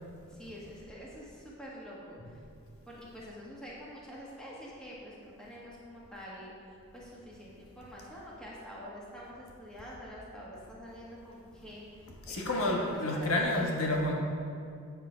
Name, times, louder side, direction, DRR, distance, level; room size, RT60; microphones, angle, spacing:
voice 1, 0.3-2.4 2.9-6.5 6.9-13.7, equal, 5° left, -6 dB, 1.5 m, -47 dB
voice 2, 12.3-14.1, left 1 dB, 75° left, -1 dB, 1.2 m, -30 dB
8.1 x 6.7 x 5.0 m, 2.4 s
head